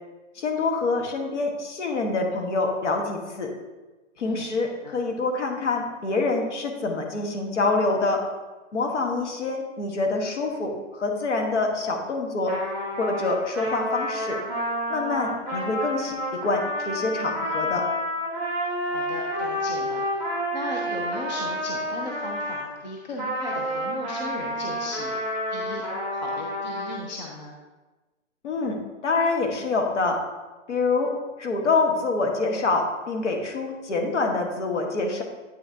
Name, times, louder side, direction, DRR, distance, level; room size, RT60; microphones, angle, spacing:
voice 1, 0.3-3.5 4.2-8.2 8.7-12.6 12.9-14.4 14.9-17.9 28.4-30.2 30.7-35.2, left 3 dB, 65° left, 2 dB, 1.4 m, -26 dB
voice 2, 4.2-4.9 18.9-20.2 20.5-25.2 25.5-25.8 26.1-27.6, left 2 dB, 35° left, -1 dB, 0.6 m, -37 dB
Trumpet, 12.5-22.7 23.2-27.0, equal, 10° left, 1.3 m, -29 dB
8.4 x 5.7 x 2.7 m, 1.2 s
hypercardioid pair, 180°, 38 cm